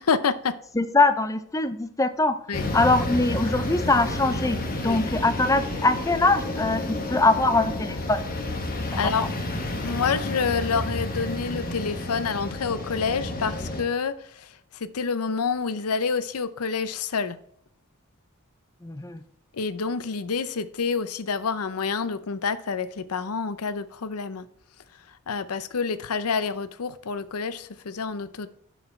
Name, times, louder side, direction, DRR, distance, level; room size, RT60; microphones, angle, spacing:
voice 1, 0.0-0.6 2.5-2.7 4.8-5.0 8.9-9.3 9.7-17.4 19.5-24.4 25.3-28.5, left 5 dB, 85° left, 0.6 m, -28 dB
voice 2, 0.8-2.4 2.7-4.6 4.8-8.2 8.9-9.1 18.8-19.2, left 2 dB, 15° left, 0.5 m, -22 dB
sound 1, 2.5-13.8, left 1 dB, 40° left, 1.4 m, -30 dB
7.1 x 6.1 x 4.4 m
head